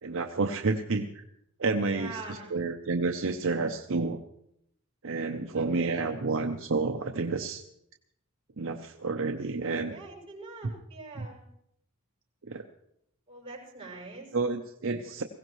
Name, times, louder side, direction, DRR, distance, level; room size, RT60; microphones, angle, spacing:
voice 1, 0.0-1.2 1.6-4.2 5.0-7.6 8.6-9.9 11.1-11.3 12.5-12.6 14.3-15.2, right 3 dB, 65° right, 5 dB, 0.7 m, -30 dB
voice 2, 1.8-2.5 5.5-6.2 9.9-11.4 13.3-14.3 15.0-15.3, right 3 dB, 25° right, -4 dB, 6.7 m, -44 dB
21.0 x 16.5 x 3.1 m, 0.75 s
head